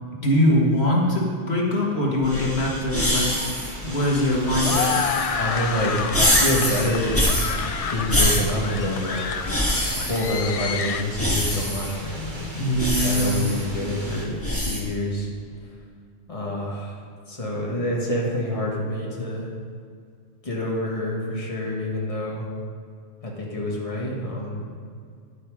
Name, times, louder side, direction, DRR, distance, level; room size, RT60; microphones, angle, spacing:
voice 1, 0.2-3.4 3.8-5.0 12.5-13.5, left 1 dB, 80° left, -3 dB, 2.0 m, -22 dB
sound 1, 2.2-14.8, left 1 dB, 15° left, 1.6 m, -26 dB
sound 2, 3.0-11.0, left 6 dB, 50° left, 0.4 m, -30 dB
sound 3, 3.0-14.3, right 1 dB, 50° right, 1.7 m, -41 dB
voice 2, 5.4-7.2 7.6-9.3 9.9-12.5 13.0-14.4 14.6-15.3 16.3-17.0 17.3-19.5 20.4-22.5 23.2-24.6, left 1 dB, 35° left, -3 dB, 1.9 m, -27 dB
11.0 x 8.5 x 5.0 m, 2.2 s
omnidirectional pair, 1.1 m